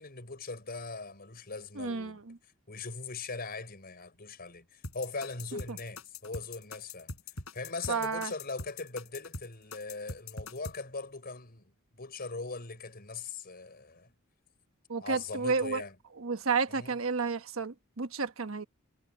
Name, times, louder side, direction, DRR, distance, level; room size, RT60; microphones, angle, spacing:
voice 1, 0.0-2.2 2.7-7.1 7.5-14.1 15.0-16.0 16.7-17.0, left 3 dB, 45° left, 4.9 m, -40 dB
voice 2, 1.8-2.4 7.9-8.3 14.9-15.8 16.2-18.6, right 4 dB, 65° right, 1.2 m, -31 dB
sound 1, 4.8-10.8, left 3 dB, 80° left, 7.7 m, -42 dB
head